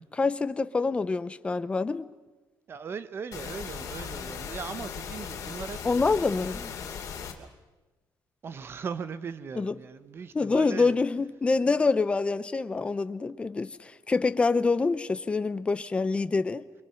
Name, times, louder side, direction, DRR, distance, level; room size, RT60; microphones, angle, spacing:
voice 1, 0.1-2.1 5.8-6.7 9.6-9.7 10.3-16.6, left 4 dB, 15° left, 0.7 m, -26 dB
voice 2, 2.7-5.8 7.4-7.5 8.4-10.9, right 6 dB, 35° right, 0.8 m, -38 dB
sound 1, 3.3-7.3, left 7 dB, 50° left, 2.9 m, -38 dB
30.0 x 23.0 x 5.8 m
cardioid pair, 175°, 7 cm